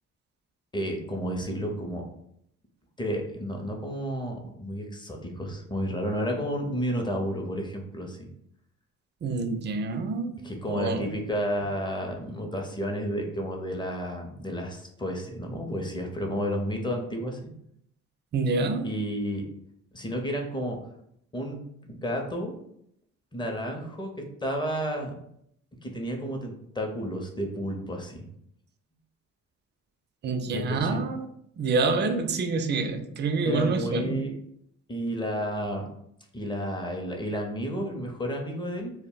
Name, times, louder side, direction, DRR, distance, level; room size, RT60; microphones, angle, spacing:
voice 1, 0.7-2.0 3.0-8.3 10.4-17.5 18.8-19.4 19.9-20.8 21.3-21.6 21.8-22.5 23.3-25.1 25.8-28.3 30.5-31.1 33.4-34.3 34.9-35.9 36.3-38.9, equal, 15° left, 2 dB, 0.6 m, -31 dB
voice 2, 9.2-10.3 10.7-11.0 18.3-18.9 30.2-31.3 31.6-34.2, right 4 dB, 35° right, 7 dB, 0.4 m, -27 dB
2.2 x 2.1 x 3.7 m, 0.73 s
cardioid pair, 90°, 30 cm